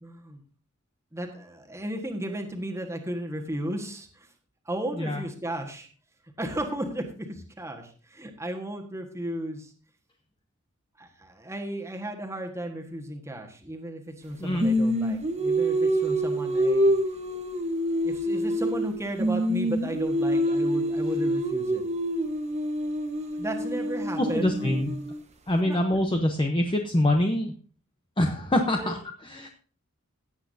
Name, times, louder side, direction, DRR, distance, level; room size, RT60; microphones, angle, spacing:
voice 1, 0.0-0.4 1.1-4.3 4.6-5.9 6.4-9.7 11.0-16.9 18.0-21.8 23.4-24.7 25.6-25.8 28.8-28.9 29.4-29.5, right 1 dB, 15° right, 2 dB, 1.5 m, -34 dB
Singing, 14.6-18.9 19.2-25.2, equal, 30° right, 1.3 m, -26 dB
voice 2, 24.2-25.0 25.5-27.5 28.2-29.0 29.2-29.5, left 1 dB, 25° left, 3 dB, 0.8 m, -25 dB
16.5 x 8.1 x 2.7 m, 0.40 s
head